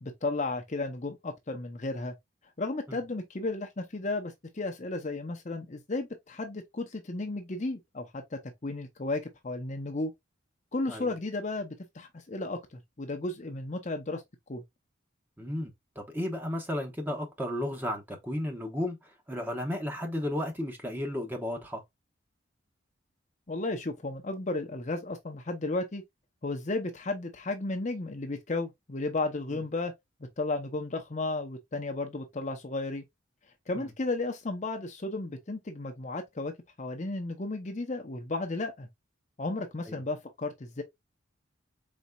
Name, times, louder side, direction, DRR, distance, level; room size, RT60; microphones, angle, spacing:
voice 1, 0.0-2.1 2.6-10.1 10.7-14.2 14.5-14.6 23.5-26.0 26.4-29.9 30.4-33.0 33.7-36.5 36.8-38.9 39.4-40.8, left 2 dB, 35° left, 0.7 m, -34 dB
voice 2, 15.4-19.0 19.3-21.8 29.5-29.6 33.8-33.9 39.9-40.0, left 1 dB, 10° right, 1.1 m, -34 dB
4.2 x 4.1 x 2.3 m
head